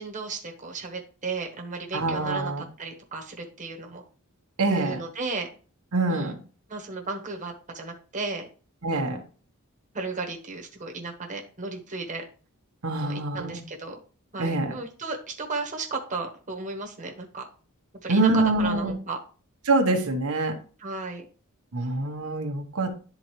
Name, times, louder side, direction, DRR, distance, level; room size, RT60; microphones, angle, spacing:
voice 1, 0.0-4.0 4.7-5.5 6.1-6.4 6.7-8.5 8.9-9.2 9.9-12.2 13.0-14.0 14.3-17.4 18.0-19.2 20.8-21.2, right 3 dB, 35° right, 1 dB, 1.1 m, -34 dB
voice 2, 1.9-2.6 4.6-5.0 5.9-6.4 8.8-9.2 12.8-13.6 14.4-14.8 18.1-19.0 19.7-20.5 21.7-23.0, right 2 dB, 80° right, 3 dB, 1.0 m, -25 dB
10.5 x 3.8 x 3.0 m, 0.39 s
head